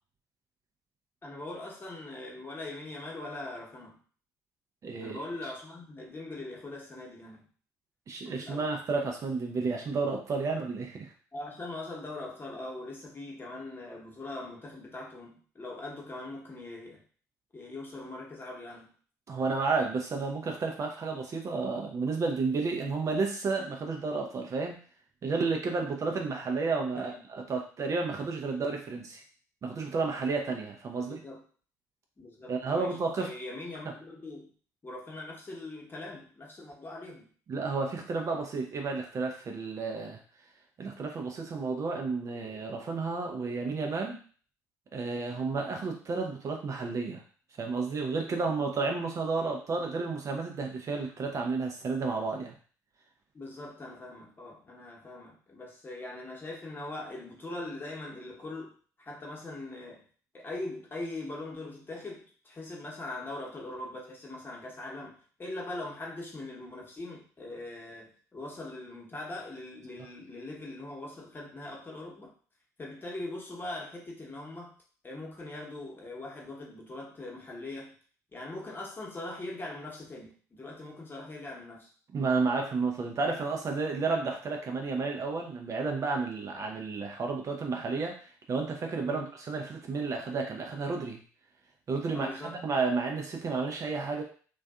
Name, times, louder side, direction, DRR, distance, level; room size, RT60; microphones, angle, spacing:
voice 1, 1.2-4.0 5.0-7.4 8.2-8.7 11.3-17.0 17.5-18.9 26.9-27.2 31.0-31.4 32.2-34.5 34.8-37.3 53.3-58.7 59.0-60.0 60.3-72.3 72.8-74.7 75.0-77.9 78.3-81.9 89.0-89.2 92.1-92.6, left 2 dB, 25° left, -2 dB, 1.0 m, -41 dB
voice 2, 4.8-5.5 8.1-11.1 19.3-24.8 25.2-29.2 29.6-31.2 32.5-33.3 37.5-40.2 40.8-44.2 44.9-47.2 47.6-52.6 82.1-91.2 91.9-94.2, right 4 dB, 40° right, 2 dB, 0.5 m, -31 dB
2.5 x 2.3 x 2.3 m, 0.43 s
hypercardioid pair, 55°, 8 cm